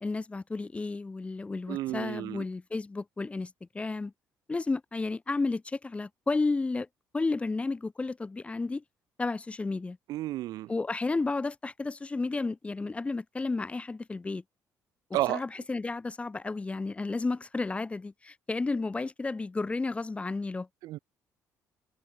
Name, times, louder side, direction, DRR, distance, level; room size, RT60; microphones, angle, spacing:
voice 1, 0.0-4.1 4.5-6.9 7.1-8.8 9.2-10.0 10.7-14.4 15.3-20.7, left 3 dB, 20° left, 0.8 m, -32 dB
voice 2, 1.7-2.4 10.1-10.7 15.1-15.4 20.8-21.0, right 15 dB, 80° right, 0.7 m, -31 dB
cardioid pair, 105°, 7 cm